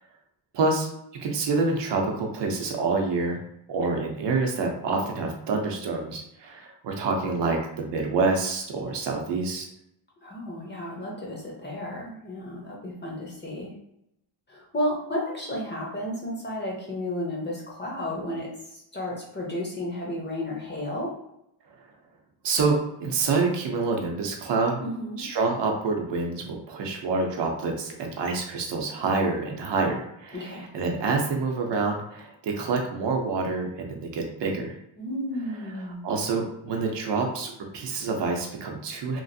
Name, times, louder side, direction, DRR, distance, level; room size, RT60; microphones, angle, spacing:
voice 1, 0.5-0.9 1.2-3.4 3.7-9.6 22.4-24.8 25.2-34.7 36.0-39.2, right 3 dB, 60° right, 1 dB, 0.6 m, -27 dB
voice 2, 10.2-13.7 14.5-21.1 24.8-25.3 30.3-30.7 35.0-36.0, left 1 dB, 25° left, -3 dB, 0.6 m, -33 dB
3.0 x 2.4 x 2.6 m, 0.79 s
wide cardioid pair, 170°, 48 cm